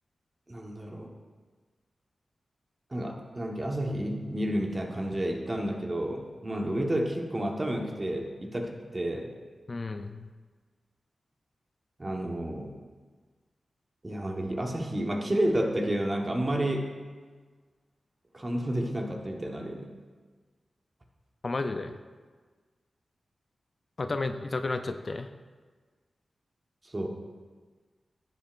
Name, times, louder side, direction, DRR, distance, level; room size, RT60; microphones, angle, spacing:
voice 1, 0.5-1.1 2.9-9.3 12.0-12.7 14.0-16.9 18.3-19.9 26.8-27.1, right 1 dB, 30° right, 1 dB, 1.3 m, -30 dB
voice 2, 9.7-10.3 21.4-22.0 24.0-25.3, left 3 dB, 50° left, 8 dB, 0.4 m, -32 dB
12.0 x 7.6 x 2.5 m, 1.4 s
cardioid pair, 55°, 0 cm